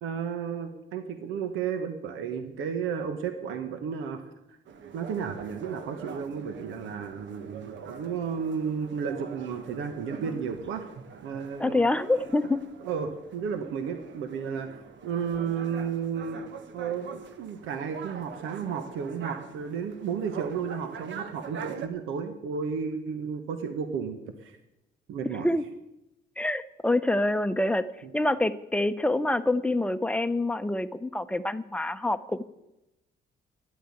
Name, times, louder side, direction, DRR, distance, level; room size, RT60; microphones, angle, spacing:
voice 1, 0.0-4.2 4.9-10.9 11.2-11.8 12.8-14.7 15.0-16.4 16.7-24.6 25.1-25.5 28.0-28.1, right 6 dB, 90° right, 7 dB, 1.3 m, -33 dB
sound 1, 4.6-21.9, right 6 dB, 70° right, 1.4 m, -44 dB
voice 2, 11.6-12.6 25.4-25.6 26.4-32.4, left 2 dB, 5° left, 11 dB, 0.8 m, -26 dB
12.0 x 8.4 x 9.7 m, 0.91 s
cardioid pair, 90°, 20 cm